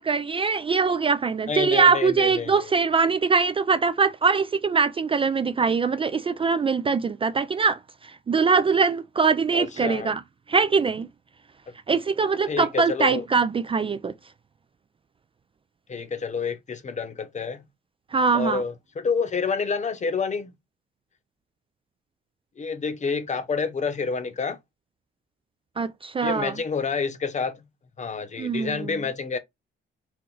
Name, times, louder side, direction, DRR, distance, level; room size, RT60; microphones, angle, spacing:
voice 1, 0.0-7.8 8.3-10.2 10.5-11.1 11.9-14.1 18.1-18.6 25.8-26.5 28.4-28.9, right 5 dB, 25° right, 0.3 m, -22 dB
voice 2, 1.5-2.7 9.5-10.2 12.5-13.2 15.9-17.6 18.3-20.5 22.6-24.6 26.2-27.6 28.0-29.4, left 5 dB, 35° left, 0.9 m, -28 dB
4.4 x 2.5 x 3.9 m
cardioid pair, 90°, 20 cm